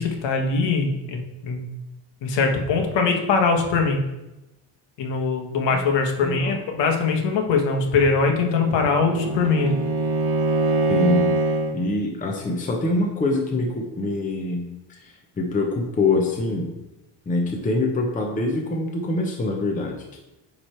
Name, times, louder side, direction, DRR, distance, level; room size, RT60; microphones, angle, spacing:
voice 1, 0.0-1.7 2.2-4.0 5.0-9.8, left 4 dB, 65° left, 3 dB, 1.3 m, -22 dB
voice 2, 6.2-6.6 10.9-14.6 14.9-16.7 17.3-20.2, left 2 dB, 15° left, 0 dB, 0.8 m, -25 dB
Bowed string instrument, 7.9-11.8, right 2 dB, 80° right, 1.3 m, -24 dB
9.7 x 3.3 x 4.4 m, 0.97 s
cardioid pair, 150°, 47 cm